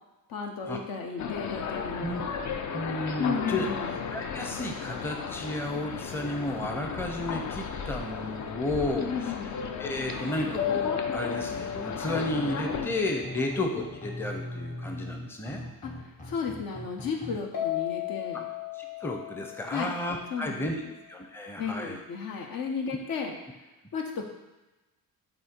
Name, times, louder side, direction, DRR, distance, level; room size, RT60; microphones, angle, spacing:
voice 1, 0.3-2.3 3.2-3.9 8.9-9.5 15.8-15.9 16.3-18.4 19.7-19.9 20.3-20.9 21.6-23.4 23.9-24.2, left 6 dB, 70° left, 2 dB, 1.0 m, -33 dB
sound 1, 1.2-12.9, left 6 dB, 50° left, 0.6 m, -35 dB
voice 2, 2.7-3.7 4.1-9.3 9.8-15.6 18.7-20.8 21.1-22.0, left 1 dB, 5° left, 2 dB, 0.6 m, -33 dB
sound 2, 10.4-17.4, left 1 dB, 20° left, 0.9 m, -42 dB
sound 3, 10.6-14.1 17.5-20.6, left 10 dB, 85° left, 1.6 m, -35 dB
7.6 x 2.8 x 4.4 m, 1.1 s
cardioid pair, 110°, 36 cm